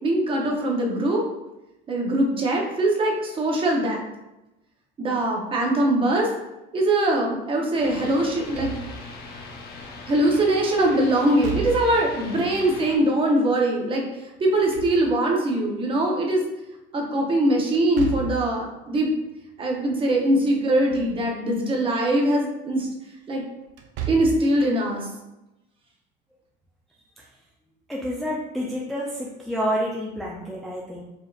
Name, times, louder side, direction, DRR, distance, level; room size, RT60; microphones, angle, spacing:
voice 1, 0.0-1.2 1.9-4.0 5.0-6.3 6.7-8.8 10.1-14.1 14.4-16.4 16.9-19.1 19.6-22.9 23.3-23.4 24.1-25.1, right 1 dB, 25° right, 0 dB, 0.8 m, -22 dB
sound 1, 7.8-13.0, left 3 dB, 50° left, 0.7 m, -40 dB
Slam / Thump thud, 8.3-9.2 11.2-12.1 14.4-15.4 17.7-18.5 20.6-21.2 21.6-21.7 23.7-24.5, right 8 dB, 75° right, 0.6 m, -34 dB
voice 2, 27.9-31.0, equal, ahead, -4 dB, 0.3 m, -29 dB
5.0 x 2.8 x 2.3 m, 0.95 s
cardioid pair, 145°, 20 cm